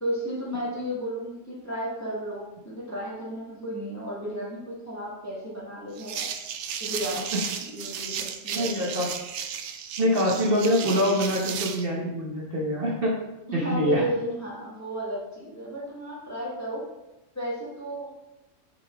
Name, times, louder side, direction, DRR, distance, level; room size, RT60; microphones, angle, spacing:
voice 1, 0.0-6.3 6.8-8.9 11.2-11.4 13.5-16.8 17.3-18.2, equal, 15° left, -6 dB, 1.7 m, -33 dB
sound 1, 6.0-11.9, right 8 dB, 70° right, 0.9 m, -34 dB
voice 2, 8.5-9.1 10.0-13.1 13.5-14.0, equal, 50° right, -3 dB, 1.2 m, -24 dB
6.1 x 5.5 x 3.4 m, 0.97 s
omnidirectional pair, 1.3 m